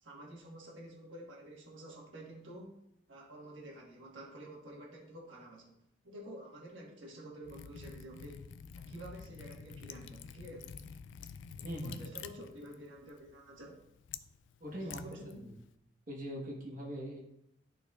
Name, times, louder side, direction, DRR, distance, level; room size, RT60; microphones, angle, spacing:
voice 1, 0.0-2.8 3.1-5.8 6.0-8.5 8.7-10.9 11.6-13.8 14.8-15.5, right 1 dB, 85° right, -2 dB, 1.4 m, -49 dB
Liquid, 7.4-15.7, left 6 dB, 80° left, 0.3 m, -49 dB
voice 2, 11.6-12.0 14.6-15.0 15.4-15.5 16.1-17.2, equal, 45° right, -2 dB, 1.1 m, -41 dB
11.0 x 4.0 x 2.4 m, 0.81 s
head